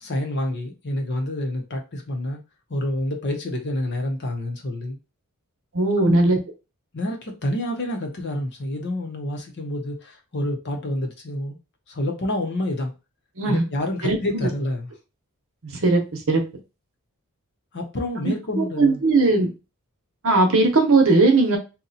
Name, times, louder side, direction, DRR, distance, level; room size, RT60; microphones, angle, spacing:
voice 1, 0.0-2.4 2.7-5.0 6.0-6.4 6.9-11.6 11.9-12.9 13.4-14.9 17.7-19.0, left 1 dB, 50° left, 0.8 m, -28 dB
voice 2, 5.7-6.4 13.4-13.6 14.0-14.5 15.8-16.0 16.3-16.4 18.6-19.5 20.2-21.6, right 3 dB, 65° right, 0.8 m, -18 dB
2.8 x 2.2 x 4.0 m
head